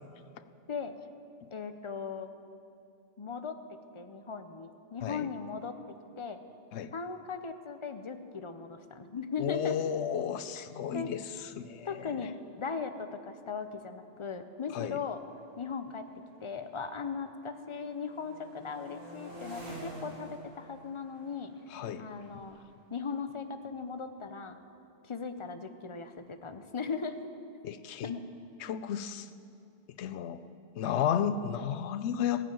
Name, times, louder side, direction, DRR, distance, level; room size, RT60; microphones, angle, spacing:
voice 1, 1.5-2.3 3.2-6.4 6.9-9.8 10.5-10.6 10.9-11.1 11.8-15.2 15.6-16.1 16.4-21.5 22.0-22.6 22.9-24.6 25.0-27.2 28.0-28.2, left 5 dB, 35° left, 9 dB, 0.5 m, -38 dB
voice 2, 9.4-12.3 14.7-15.0 21.7-22.1 22.3-22.4 27.6-28.1 28.6-29.3 30.0-30.4 30.7-32.5, left 8 dB, 80° left, 13 dB, 0.9 m, -33 dB
sound 1, 11.5-11.6 11.9-12.2 13.0-16.9 17.2-23.9, right 1 dB, 55° right, 2.8 m, -51 dB
14.5 x 6.9 x 8.9 m, 2.6 s
omnidirectional pair, 1.1 m